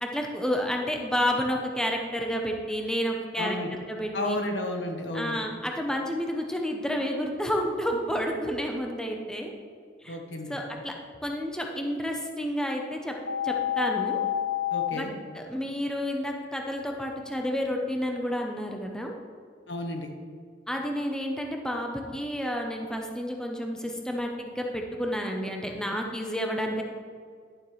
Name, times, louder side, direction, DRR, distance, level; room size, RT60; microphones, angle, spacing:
voice 1, 0.0-4.4 5.1-9.5 10.0-10.2 10.5-10.9 11.2-13.1 13.4-14.2 14.9-15.1 15.3-19.2 20.7-26.8, equal, 5° left, 1 dB, 0.7 m, -30 dB
voice 2, 3.4-3.7 4.1-5.4 10.1-10.5 14.7-15.1 19.7-20.1, left 1 dB, 85° left, 3 dB, 1.2 m, -32 dB
sound 1, 13.3-14.9, left 10 dB, 70° left, 0.7 m, -28 dB
11.5 x 7.2 x 3.2 m, 2.1 s
head